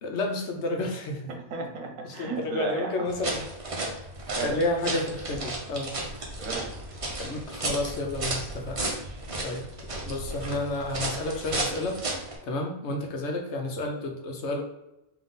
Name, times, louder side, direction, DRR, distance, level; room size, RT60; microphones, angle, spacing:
voice 1, 0.0-1.2 2.2-3.5 4.4-5.9 7.2-8.8 9.4-12.0 12.4-14.6, left 2 dB, 60° left, 2 dB, 0.9 m, -31 dB
voice 2, 1.3-3.1 4.3-4.6 6.4-7.0 8.8-9.2, right 3 dB, 70° right, 4 dB, 1.1 m, -35 dB
sound 1, 3.1-12.4, right 2 dB, 35° right, 0.6 m, -34 dB
3.7 x 2.8 x 3.9 m, 0.93 s
omnidirectional pair, 1.4 m